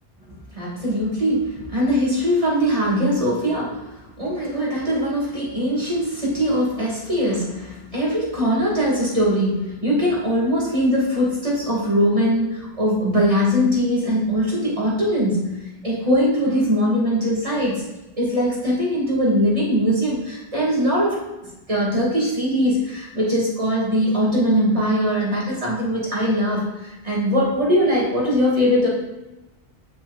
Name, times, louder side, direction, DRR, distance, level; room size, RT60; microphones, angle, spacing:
voice 1, 0.3-17.8 18.2-21.2 21.7-28.9, equal, 35° right, -5 dB, 2.6 m, -21 dB
8.2 x 6.8 x 2.6 m, 1.0 s
omnidirectional pair, 1.0 m